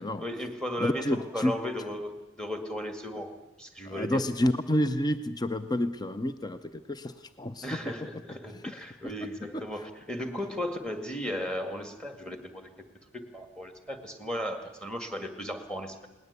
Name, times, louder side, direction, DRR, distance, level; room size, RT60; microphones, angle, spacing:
voice 1, 0.2-3.3 3.6-4.3 7.6-12.7 13.1-16.1, left 1 dB, 5° left, 6 dB, 2.0 m, -36 dB
voice 2, 0.8-1.5 3.8-7.9 8.5-8.7 9.5-9.6, left 1 dB, 20° left, 10 dB, 0.6 m, -29 dB
20.0 x 19.0 x 8.2 m, 1.1 s
head